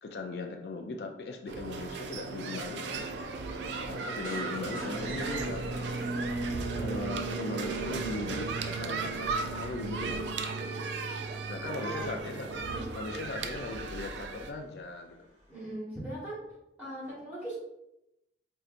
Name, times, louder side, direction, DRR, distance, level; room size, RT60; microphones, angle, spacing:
voice 1, 0.0-3.1 3.9-6.1 6.8-10.2 11.5-12.5 12.9-15.2, left 3 dB, 65° left, 4 dB, 0.4 m, -39 dB
sound 1, 1.5-14.5, right 4 dB, 80° right, 0.3 m, -35 dB
sound 2, 3.4-15.7, equal, 35° right, 1.0 m, -51 dB
sound 3, 4.2-7.2, left 1 dB, 45° left, 1.0 m, -49 dB
voice 2, 11.6-12.1 12.6-12.9 15.5-16.4 16.8-17.6, right 1 dB, 10° right, -8 dB, 1.4 m, -40 dB
4.5 x 2.7 x 2.4 m, 0.86 s
head